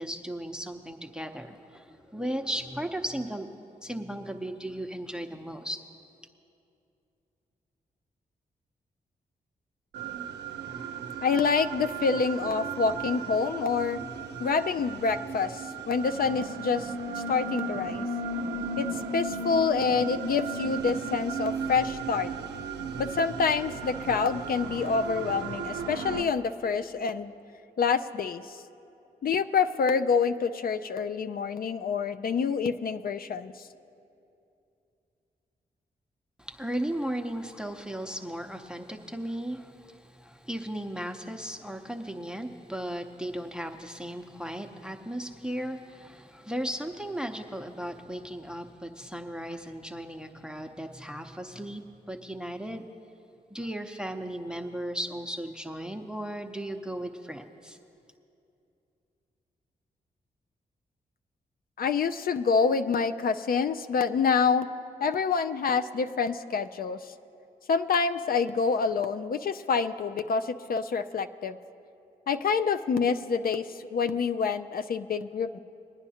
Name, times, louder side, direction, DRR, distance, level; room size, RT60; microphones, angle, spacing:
voice 1, 0.0-3.5 3.8-5.8 36.4-51.8 52.1-52.9 53.5-57.8, right 1 dB, 5° right, 4 dB, 0.7 m, -36 dB
sound 1, 9.9-26.2, right 4 dB, 90° right, 0.5 m, -35 dB
voice 2, 11.2-14.0 14.4-18.0 18.8-22.3 23.0-27.3 27.8-28.6 29.2-33.5 61.8-64.7 65.0-67.0 67.7-71.6 72.3-75.6, left 5 dB, 60° left, 10 dB, 0.5 m, -27 dB
22.0 x 9.7 x 2.8 m, 2.7 s
supercardioid pair, 50°, 17 cm